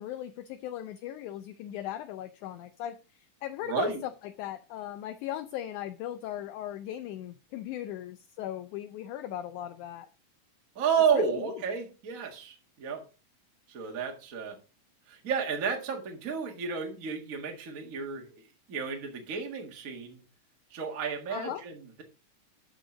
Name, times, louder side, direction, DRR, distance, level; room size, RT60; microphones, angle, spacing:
voice 1, 0.0-10.1 11.1-11.6 21.3-21.6, left 12 dB, 75° left, 9 dB, 2.0 m, -38 dB
voice 2, 3.7-4.0 10.7-13.0 13.7-14.6 15.1-18.4 18.7-20.2 20.7-22.0, right 6 dB, 35° right, 2 dB, 1.6 m, -31 dB
13.0 x 5.3 x 3.8 m, 0.32 s
omnidirectional pair, 3.8 m